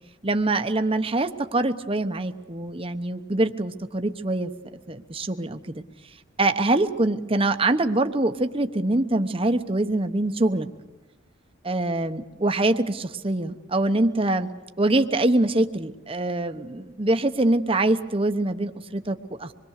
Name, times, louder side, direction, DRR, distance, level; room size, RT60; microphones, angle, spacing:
voice 1, 0.2-4.5 4.9-5.8 6.4-10.7 11.6-14.5 14.8-19.5, right 2 dB, 30° right, 8 dB, 1.0 m, -24 dB
26.0 x 22.0 x 6.6 m, 1.1 s
head